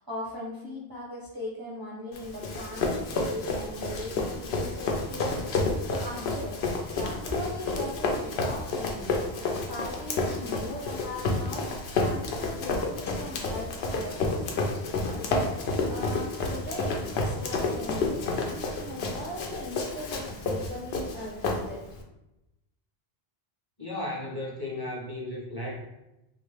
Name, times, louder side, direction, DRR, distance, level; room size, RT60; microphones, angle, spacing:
voice 1, 0.0-6.6 7.0-21.8, left 1 dB, 30° right, -5 dB, 0.4 m, -39 dB
Run, 2.1-22.0, left 3 dB, 80° left, 0.8 m, -30 dB
voice 2, 23.8-25.8, left 1 dB, 30° left, -5 dB, 0.6 m, -35 dB
3.0 x 2.4 x 3.2 m, 0.93 s
omnidirectional pair, 1.1 m